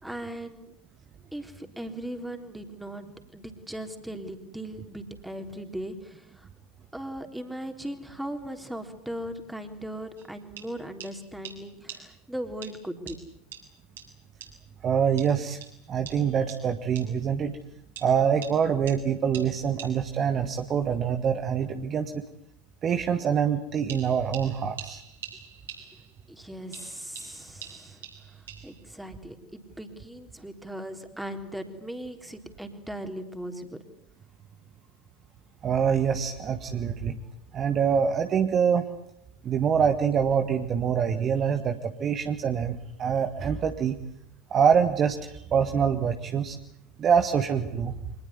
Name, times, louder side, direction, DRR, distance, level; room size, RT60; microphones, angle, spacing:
voice 1, 0.0-0.7 1.3-3.1 3.3-6.5 6.9-13.2 26.3-28.1 28.6-33.8, right 1 dB, 5° right, 6 dB, 3.7 m, -38 dB
sound 1, 10.2-10.3 10.6-10.7 11.0-11.1 11.4-11.6 11.9-12.0 12.6-12.7 13.1-13.2 13.5-13.6 14.0-14.1 14.4-14.5 15.2-15.3 15.6-15.7 16.1-16.2 16.5-16.6 17.0-17.1 18.0-18.1 18.4-18.5 18.9-19.0 19.3-19.5 19.8-19.9 23.9-26.3 26.7-28.8, right 9 dB, 65° right, 7.4 m, -43 dB
voice 2, 14.8-15.6 15.9-17.6 18.0-22.1 22.8-25.0 35.6-37.2 37.5-38.8 39.4-44.0 44.5-46.6 47.0-47.9, right 7 dB, 30° right, 7 dB, 1.7 m, -25 dB
25.5 x 20.5 x 9.8 m, 0.74 s
figure-of-eight pair, 80°, 0 cm